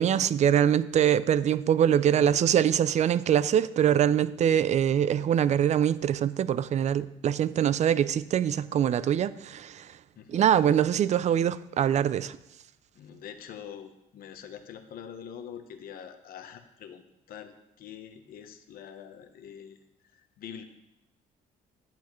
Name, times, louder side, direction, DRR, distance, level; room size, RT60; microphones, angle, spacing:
voice 1, 0.0-9.9 10.3-12.4, right 9 dB, 45° right, 0.4 m, -24 dB
voice 2, 2.1-2.7 4.4-4.6 10.2-10.4 12.9-17.0 17.3-19.8 20.1-20.6, left 8 dB, 60° left, 0.9 m, -44 dB
10.5 x 8.2 x 3.1 m
cardioid pair, 110°, 17 cm